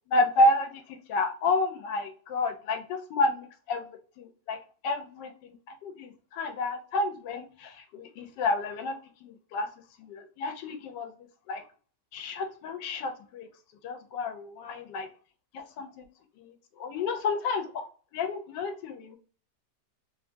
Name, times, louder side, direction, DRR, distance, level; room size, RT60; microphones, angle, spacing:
voice 1, 0.1-3.9 4.2-4.6 4.8-9.7 10.0-11.1 11.5-11.6 12.1-13.5 13.8-15.1 15.5-16.0 16.4-17.8 18.1-19.2, left 2 dB, 80° left, 1.2 m, -30 dB
3.2 x 2.3 x 2.5 m
omnidirectional pair, 1.9 m